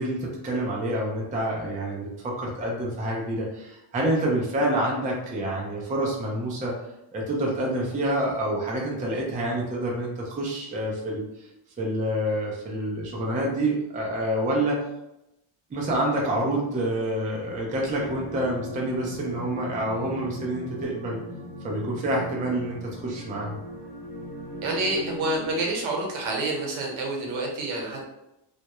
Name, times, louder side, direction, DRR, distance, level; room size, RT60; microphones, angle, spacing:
voice 1, 0.0-6.7 7.1-11.5 11.8-14.8 15.7-21.2 21.6-23.6, right 1 dB, 20° right, -2 dB, 0.4 m, -27 dB
sound 1, 18.0-25.7, equal, 40° left, 0.9 m, -39 dB
voice 2, 24.6-28.1, right 2 dB, 70° right, -1 dB, 0.9 m, -28 dB
2.3 x 2.1 x 2.8 m, 0.88 s
cardioid pair, 135°, 50 cm